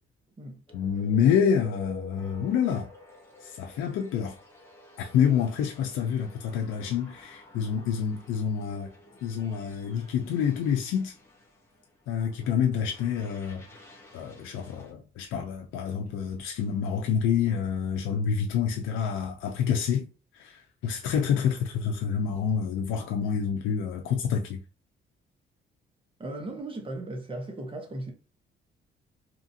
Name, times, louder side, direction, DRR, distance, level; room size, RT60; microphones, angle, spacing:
voice 1, 0.7-2.9 3.4-4.4 5.0-8.9 9.2-11.1 12.1-13.7 14.1-20.1 20.3-24.6, left 7 dB, 90° left, 0.5 m, -27 dB
sound 1, 0.7-14.9, left 2 dB, 10° left, 0.9 m, -50 dB
voice 2, 26.2-28.1, right 2 dB, 25° right, 0.9 m, -37 dB
2.8 x 2.5 x 2.7 m
cardioid pair, 90°, 20 cm